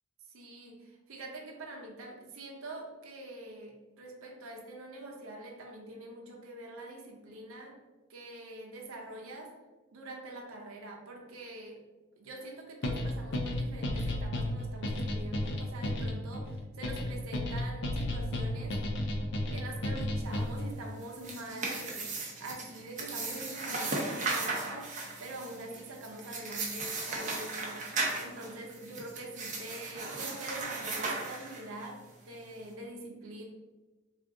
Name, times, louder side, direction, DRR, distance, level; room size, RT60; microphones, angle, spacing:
voice 1, 0.3-7.7 8.1-9.5 9.9-11.8 12.2-18.8 19.5-22.1 22.4-24.9 25.2-27.8 28.2-32.0 32.2-33.4, right 1 dB, 90° right, -1 dB, 0.7 m, -44 dB
sound 1, 12.8-20.7, left 1 dB, 55° left, 0.5 m, -33 dB
sound 2, 21.0-31.9, right 3 dB, 35° right, 0.7 m, -36 dB
3.5 x 2.4 x 3.6 m, 1.2 s
head